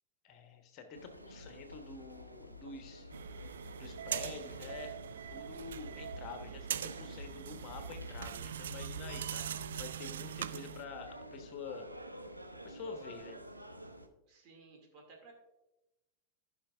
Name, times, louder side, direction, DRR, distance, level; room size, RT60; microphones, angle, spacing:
voice 1, 0.2-3.1 3.4-3.5 3.8-4.9 5.3-11.9 12.6-13.4, left 5 dB, 40° left, 6 dB, 1.1 m, -48 dB
sound 1, 0.9-14.1, equal, 90° right, 0.7 m, -49 dB
sound 2, 3.1-10.8, right 9 dB, 65° right, 0.3 m, -42 dB
voice 2, 14.3-15.3, right 3 dB, 40° right, 1 dB, 2.4 m, -57 dB
14.5 x 5.8 x 2.5 m, 0.98 s
figure-of-eight pair, 90°, 0 cm